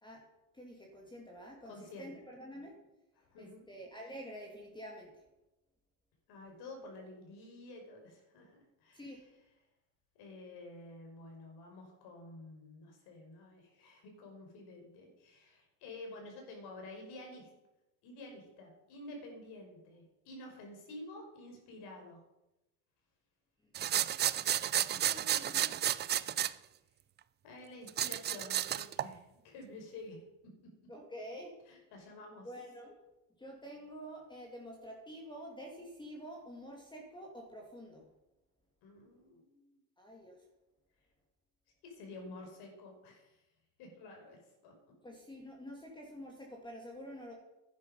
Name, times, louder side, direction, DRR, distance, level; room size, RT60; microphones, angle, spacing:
voice 1, 0.5-2.7 3.4-5.1 8.9-9.2 24.9-25.9 30.9-31.5 32.4-33.0 33.4-38.1 40.0-40.4 45.0-47.3, equal, 10° left, 0 dB, 2.4 m, -48 dB
voice 2, 1.6-2.1 3.2-3.6 6.3-9.2 10.2-17.5 18.0-22.2 24.7-25.3 27.4-30.2 30.4-30.7 31.7-32.5 38.8-39.8 41.8-43.4 43.8-44.4 44.6-44.7, left 2 dB, 65° left, 2 dB, 5.4 m, -50 dB
sound 1, 23.7-26.5 27.9-29.1, right 11 dB, 25° right, 0.4 m, -32 dB
11.5 x 10.0 x 5.4 m, 0.95 s
supercardioid pair, 105°, 42 cm